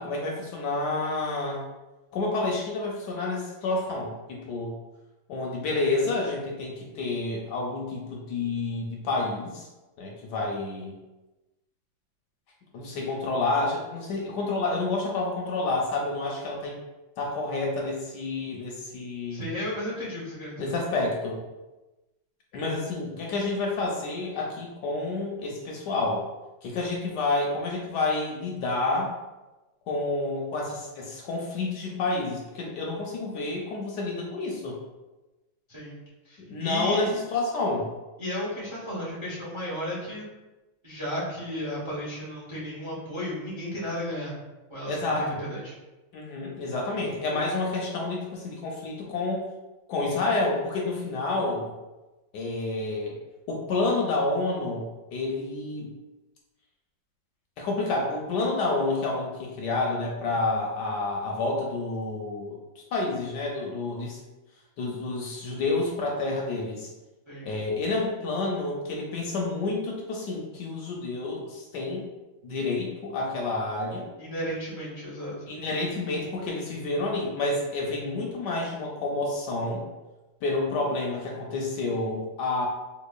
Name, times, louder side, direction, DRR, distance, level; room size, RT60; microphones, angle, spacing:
voice 1, 0.0-1.6 2.1-4.8 5.3-9.7 10.0-11.0 12.7-16.8 17.2-19.4 20.6-21.4 22.5-26.2 26.6-29.1 29.9-34.8 36.4-37.9 44.9-45.4 46.1-49.5 49.9-51.8 52.3-53.2 53.5-55.9 57.6-64.2 64.8-66.9 67.4-72.1 72.4-74.1 75.5-79.9 80.4-82.7, left 2 dB, 75° left, -1 dB, 1.1 m, -29 dB
voice 2, 19.3-20.7 35.7-37.1 38.2-40.3 40.8-44.3 44.7-45.7 67.3-67.5 74.2-75.6, equal, 50° right, -7 dB, 0.3 m, -34 dB
3.9 x 2.9 x 2.3 m, 1.1 s
omnidirectional pair, 2.1 m